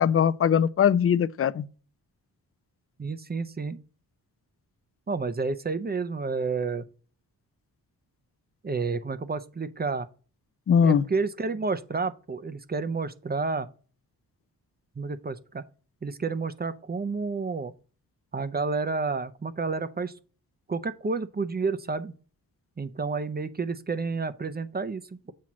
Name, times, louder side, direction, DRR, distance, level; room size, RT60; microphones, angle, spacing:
voice 1, 0.0-1.7 10.7-11.0, left 8 dB, 35° left, 0.5 m, -21 dB
voice 2, 3.0-3.8 5.1-6.8 8.6-10.1 10.8-13.7 15.0-15.6 16.0-17.7 18.3-20.1 20.7-22.1 22.8-25.0, right 4 dB, 25° right, 0.6 m, -30 dB
7.6 x 2.9 x 6.0 m
cardioid pair, 65°, 38 cm